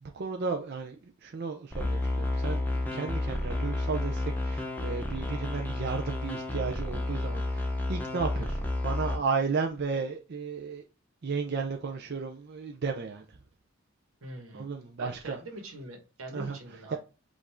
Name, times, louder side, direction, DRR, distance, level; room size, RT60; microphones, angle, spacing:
voice 1, 0.0-10.8 11.2-13.4 14.5-15.4 16.3-16.6 16.9-17.0, right 5 dB, 50° right, 0.5 m, -34 dB
sound 1, 1.7-9.2, left 2 dB, 10° left, 0.7 m, -31 dB
voice 2, 14.2-14.7 15.0-17.0, right 1 dB, 80° right, 1.4 m, -43 dB
5.1 x 2.5 x 3.5 m
head